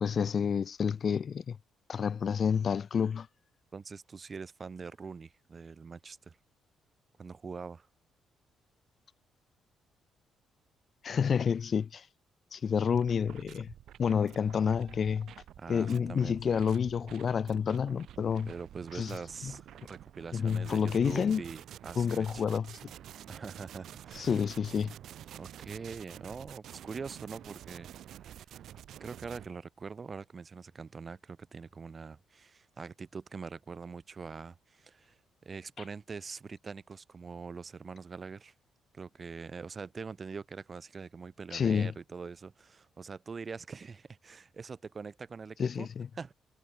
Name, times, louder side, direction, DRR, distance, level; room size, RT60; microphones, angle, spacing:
voice 1, 0.0-1.6 1.9-3.3 11.0-12.1 12.5-13.7 14.0-15.3 15.7-18.5 18.9-19.1 19.4-19.5 20.3-21.4 22.0-22.8 24.1-24.9 41.5-41.9 45.6-46.1, left 7 dB, 50° left, 0.5 m, -29 dB
voice 2, 3.7-6.4 7.2-7.9 15.6-16.6 18.5-22.4 23.3-24.4 25.3-27.9 29.0-38.5 38.9-45.9 46.2-46.3, right 5 dB, 35° right, 4.4 m, -43 dB
Sonic Debris, 12.9-29.5, right 11 dB, 70° right, 4.4 m, -49 dB
cardioid pair, 90°, 0 cm